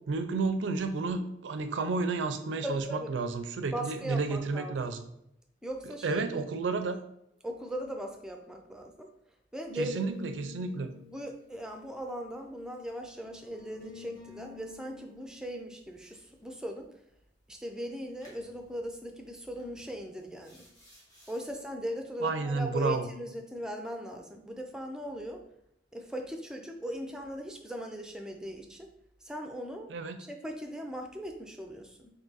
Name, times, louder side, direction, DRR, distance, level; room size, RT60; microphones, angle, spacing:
voice 1, 0.1-5.1 5.9-7.0 9.7-10.9 22.2-23.1 29.9-30.2, right 4 dB, 80° right, 8 dB, 0.4 m, -31 dB
voice 2, 2.6-3.1 3.7-4.7 5.6-6.2 7.4-9.1 9.5-10.3 11.1-16.9 17.5-20.7 21.3-25.4 25.9-28.9 29.2-29.9 30.2-32.1, equal, 5° right, 3 dB, 0.4 m, -39 dB
sound 1, 9.7-12.5 13.2-15.3 18.2-18.4 19.6-19.9 20.4-21.4, left 7 dB, 20° left, 1.2 m, -50 dB
3.6 x 2.7 x 3.9 m, 0.77 s
head